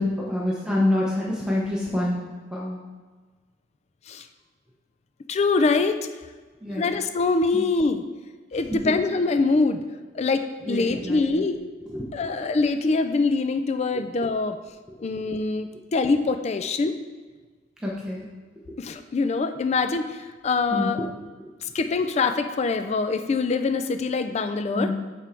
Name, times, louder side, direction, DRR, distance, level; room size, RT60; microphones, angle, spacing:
voice 1, 0.0-2.2 2.5-2.8 6.6-6.8 7.5-7.6 8.8-8.9 10.7-11.4 11.9-12.0 17.8-18.3 20.7-20.9 24.7-24.9, left 1 dB, 5° right, -5 dB, 0.8 m, -26 dB
voice 2, 5.3-6.0 6.8-8.0 8.5-9.8 10.1-11.6 12.1-14.6 15.0-16.9 18.8-20.1 20.4-21.0 21.7-24.9, left 3 dB, 35° left, 9 dB, 0.3 m, -24 dB
6.1 x 4.4 x 4.4 m, 1.4 s
head